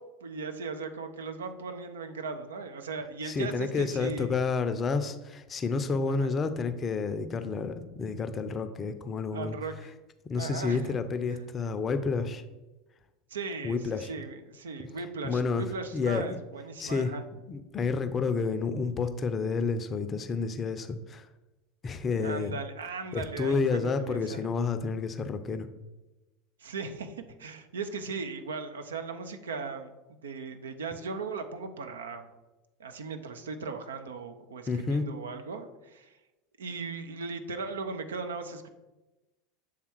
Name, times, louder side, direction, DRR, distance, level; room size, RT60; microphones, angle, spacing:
voice 1, 0.2-4.4 6.1-6.3 9.3-9.7 10.4-10.9 13.3-17.2 22.2-24.4 26.6-32.3 32.8-36.1 36.6-38.7, right 4 dB, 70° right, 7 dB, 0.5 m, -38 dB
voice 2, 3.2-9.6 10.3-12.4 13.6-14.1 15.2-15.6 15.9-16.4 16.8-17.1 17.5-21.3 21.8-22.5 23.1-25.7 34.7-35.1, left 4 dB, 25° left, 9 dB, 0.5 m, -30 dB
7.4 x 3.5 x 4.5 m, 1.1 s
figure-of-eight pair, 80°, 0 cm